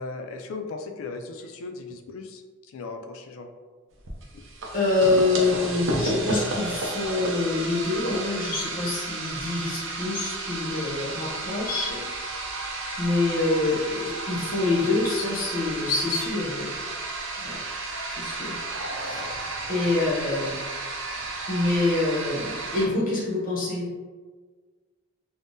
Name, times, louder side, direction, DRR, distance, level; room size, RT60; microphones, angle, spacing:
voice 1, 0.0-2.4 2.7-3.5 20.1-20.2, left 3 dB, 85° left, 6 dB, 0.3 m, -37 dB
sound 1, 4.1-22.9, right 2 dB, 65° right, 0.5 m, -32 dB
voice 2, 4.7-12.0 13.0-16.7 17.4-17.6 18.1-18.5 19.0-19.3 19.7-20.6 21.5-23.9, left 2 dB, 45° left, -6 dB, 0.9 m, -26 dB
3.5 x 2.1 x 2.6 m, 1.5 s
head